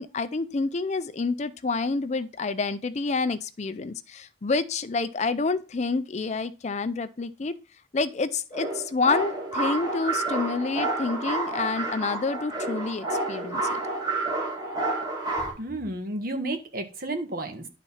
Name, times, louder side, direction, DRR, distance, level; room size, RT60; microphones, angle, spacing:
voice 1, 0.0-7.6 7.9-13.8, left 4 dB, 40° left, 0.5 m, -28 dB
sound 1, 8.5-15.5, right 2 dB, 25° right, 2.7 m, -29 dB
voice 2, 15.4-17.7, right 2 dB, 55° right, 1.6 m, -32 dB
10.5 x 4.1 x 5.6 m
head